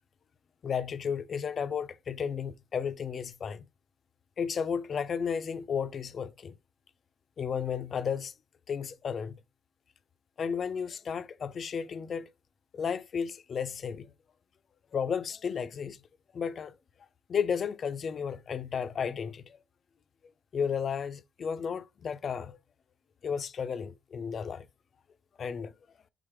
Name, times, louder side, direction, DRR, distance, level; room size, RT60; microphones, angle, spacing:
voice 1, 0.6-3.6 4.4-6.6 7.4-8.3 8.7-9.4 10.4-12.3 12.7-14.1 14.9-16.0 16.3-16.8 17.3-19.6 20.5-22.6 23.2-24.7 25.4-25.7, left 7 dB, 50° left, 0.3 m, -33 dB
3.6 x 3.3 x 3.1 m
cardioid pair, 90°, 0 cm